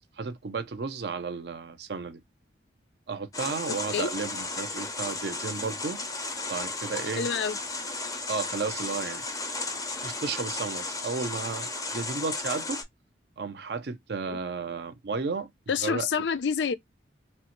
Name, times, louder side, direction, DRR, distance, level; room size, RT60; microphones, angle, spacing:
voice 1, 0.2-2.2 3.1-6.0 6.5-7.3 8.3-9.2 10.0-12.8 13.4-16.1, right 4 dB, 60° right, 0.5 m, -33 dB
sound 1, 3.3-12.8, left 3 dB, 20° left, 0.5 m, -34 dB
voice 2, 7.2-7.6 14.3-14.4 15.7-16.8, left 6 dB, 75° left, 0.4 m, -27 dB
3.1 x 2.1 x 2.9 m
head